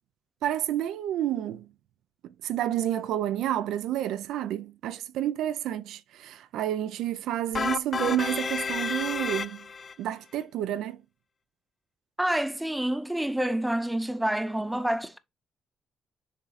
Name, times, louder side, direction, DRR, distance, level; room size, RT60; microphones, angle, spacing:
voice 1, 0.4-1.7 2.4-9.6 10.0-11.0, right 12 dB, 85° right, 0.5 m, -30 dB
sound 1, 7.5-9.9, left 5 dB, 40° left, 0.5 m, -31 dB
voice 2, 12.2-15.2, right 1 dB, 5° right, 0.7 m, -28 dB
7.1 x 3.6 x 4.1 m
cardioid pair, 90°, 0 cm